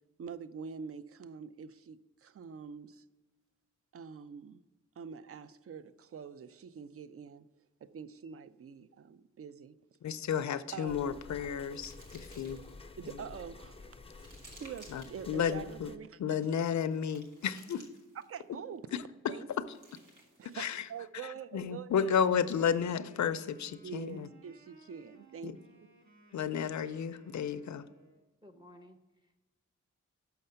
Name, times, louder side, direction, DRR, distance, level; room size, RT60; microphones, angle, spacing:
voice 1, 0.2-3.0 3.9-4.6 5.0-7.4 7.8-9.8 10.7-11.2 13.0-13.8 14.6-16.4 18.3-18.9 19.3-19.5 20.4-22.2 23.8-25.9, right 7 dB, 50° right, 0.4 m, -45 dB
voice 2, 10.0-12.6 13.0-13.2 14.9-15.9 16.2-17.9 18.9-19.7 20.5-20.9 21.2-24.3 25.4-25.6 26.3-27.9, left 7 dB, 70° left, 0.5 m, -33 dB
sound 1, 10.6-12.9 13.4-15.4 16.3-18.4 19.4-21.0, right 1 dB, 85° right, 1.6 m, -59 dB
sound 2, 10.9-16.0, left 3 dB, 20° left, 0.5 m, -51 dB
Wind instrument woodwind instrument, 22.0-28.2, right 3 dB, 65° right, 1.7 m, -60 dB
voice 3, 28.4-29.4, left 1 dB, 15° right, 0.7 m, -56 dB
6.5 x 5.7 x 5.6 m
wide cardioid pair, 75°, 30 cm